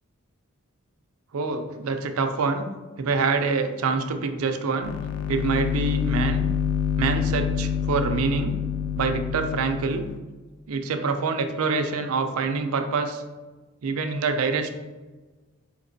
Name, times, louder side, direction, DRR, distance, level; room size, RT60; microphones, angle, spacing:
voice 1, 1.3-2.7 3.0-4.9 5.3-6.5 7.0-8.5 9.0-10.1 10.7-13.2 13.8-14.7, right 4 dB, 80° right, 7 dB, 0.4 m, -26 dB
sound 1, 4.8-10.2, left 8 dB, 90° left, 0.3 m, -27 dB
5.1 x 2.9 x 2.6 m, 1.2 s
head